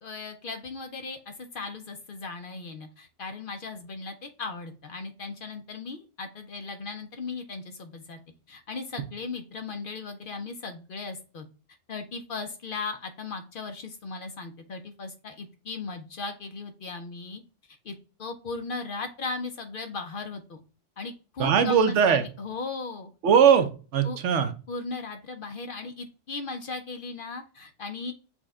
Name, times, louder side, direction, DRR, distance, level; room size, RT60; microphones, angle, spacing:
voice 1, 0.0-8.2 8.5-11.5 11.9-17.4 17.8-20.6 21.0-23.1 24.0-24.2 24.7-28.1, left 4 dB, 55° left, 7 dB, 0.7 m, -37 dB
voice 2, 21.4-22.2 23.2-24.5, right 7 dB, 75° right, 8 dB, 0.9 m, -20 dB
6.1 x 2.2 x 3.5 m, 0.35 s
omnidirectional pair, 1.2 m